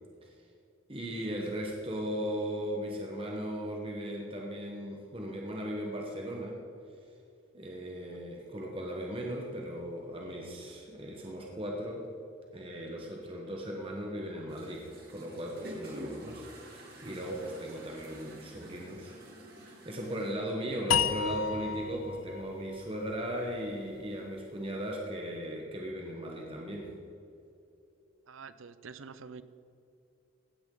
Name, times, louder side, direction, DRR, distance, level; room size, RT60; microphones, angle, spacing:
voice 1, 0.9-6.6 7.5-12.1 12.5-19.1 19.8-26.9, equal, 25° right, 0 dB, 1.2 m, -37 dB
sound 1, 14.5-20.3, equal, 50° right, 2.4 m, -47 dB
sound 2, 20.9-24.1, left 8 dB, 90° left, 0.5 m, -33 dB
voice 2, 28.3-29.4, right 5 dB, 80° right, 14 dB, 0.6 m, -47 dB
16.0 x 9.8 x 3.9 m, 2.6 s
head